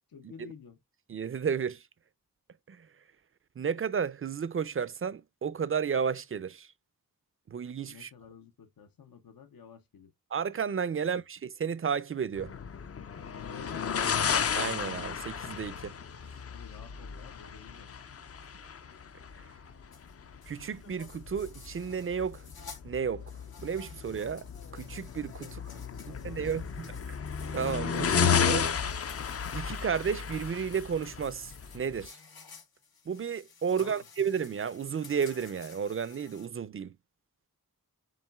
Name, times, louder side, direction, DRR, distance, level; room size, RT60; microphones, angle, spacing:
voice 1, 0.1-0.8 7.9-10.1 10.9-11.2 13.4-14.2 16.4-18.0 25.4-27.2 33.7-34.0, left 6 dB, 75° left, 0.7 m, -51 dB
voice 2, 1.1-1.8 2.7-2.9 3.6-6.7 7.5-8.1 10.3-12.5 14.5-16.0 20.5-22.4 22.8-23.2 23.6-24.5 24.7-25.5 26.2-26.6 27.5-28.7 29.5-32.2 33.1-37.0, right 7 dB, 40° right, 0.4 m, -32 dB
sound 1, 12.3-32.1, left 7 dB, 45° left, 0.4 m, -33 dB
sound 2, 19.9-20.1 20.4-22.8 23.2-36.5, left 5 dB, 90° left, 1.1 m, -53 dB
7.2 x 3.0 x 2.2 m
wide cardioid pair, 70°, 35 cm